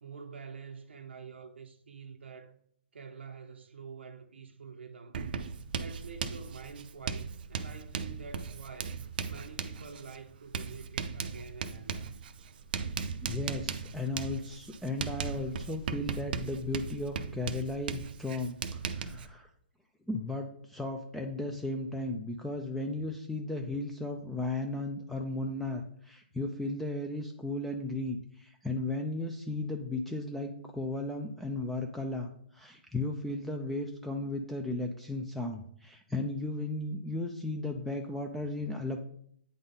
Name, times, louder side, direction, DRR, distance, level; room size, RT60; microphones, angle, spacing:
voice 1, 0.0-2.5 2.9-5.3 5.8-9.0 9.3-12.1, right 5 dB, 90° right, 0.7 m, -47 dB
Writing, 5.1-19.3, right 6 dB, 55° right, 0.5 m, -38 dB
voice 2, 13.2-19.5 20.1-39.0, left 2 dB, ahead, 0.4 m, -35 dB
8.7 x 3.9 x 3.8 m
hypercardioid pair, 150°, 6 cm